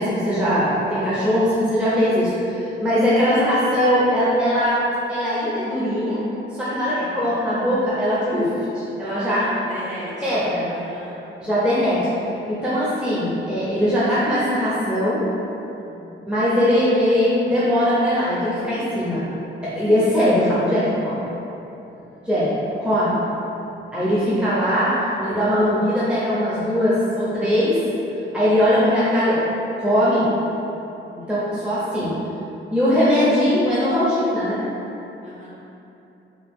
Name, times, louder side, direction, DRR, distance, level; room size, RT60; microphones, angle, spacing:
voice 1, 0.0-4.8 5.1-6.2 6.6-9.5 10.2-10.7 11.4-12.1 12.5-15.2 16.3-19.3 19.6-21.3 22.2-22.5 22.8-23.2 23.9-27.8 28.3-29.4 29.8-30.3 31.3-32.1 32.7-34.7, equal, 5° right, -10 dB, 0.5 m, -20 dB
voice 2, 9.0-11.2 11.7-11.9 15.7-16.2 20.0-20.6 27.9-28.4 30.7-31.4 35.2-35.5, equal, 35° right, -8 dB, 0.8 m, -40 dB
2.9 x 2.3 x 3.4 m, 2.9 s
wide cardioid pair, 125°, 21 cm